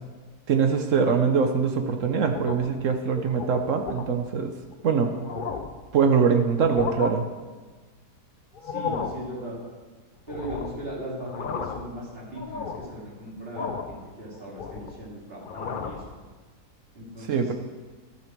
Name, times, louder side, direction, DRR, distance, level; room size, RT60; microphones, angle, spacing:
voice 1, 0.5-4.5 4.8-5.1 5.9-7.2 17.2-17.5, right 6 dB, 60° right, 6 dB, 0.9 m, -23 dB
sound 1, 2.2-2.8 3.2-3.5 3.9-4.1 4.7-4.8 5.1-5.8 6.6-7.1 8.5-9.2 10.3-10.8 11.2-11.9 12.3-12.9 13.5-14.0 14.3-15.0 15.4-16.1, left 5 dB, 75° left, 0.4 m, -33 dB
voice 2, 8.6-9.6 10.3-16.0 16.9-17.5, right 1 dB, 35° right, -5 dB, 2.9 m, -38 dB
12.0 x 8.3 x 4.5 m, 1.4 s
omnidirectional pair, 1.8 m